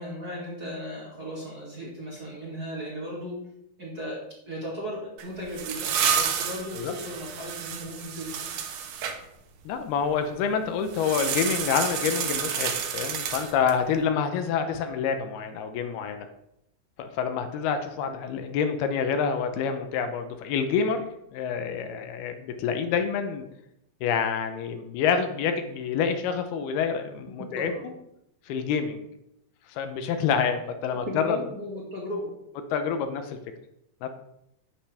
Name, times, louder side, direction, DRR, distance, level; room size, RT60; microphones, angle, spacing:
voice 1, 0.0-3.4 3.8-8.5 27.6-27.8 30.9-32.3, equal, 30° right, -5 dB, 2.3 m, -36 dB
sound 1, 5.2-9.2 10.9-13.8, right 8 dB, 70° right, 2.3 m, -30 dB
voice 2, 9.7-16.3 17.0-21.1 21.3-23.5 24.0-27.9 28.5-29.1 29.7-31.4 32.7-33.4 34.0-34.1, left 6 dB, 80° left, 8 dB, 2.7 m, -27 dB
10.0 x 9.9 x 3.5 m, 0.80 s
omnidirectional pair, 4.6 m